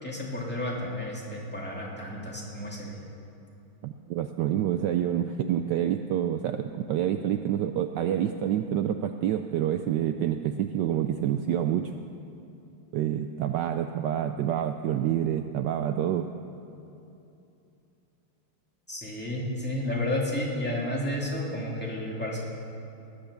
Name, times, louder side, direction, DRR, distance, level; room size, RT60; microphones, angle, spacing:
voice 1, 0.0-3.0 18.9-22.4, left 1 dB, 5° left, -4 dB, 2.5 m, -32 dB
voice 2, 3.8-11.9 12.9-16.3, right 10 dB, 75° right, 7 dB, 1.0 m, -27 dB
19.5 x 8.8 x 6.9 m, 2.8 s
omnidirectional pair, 2.3 m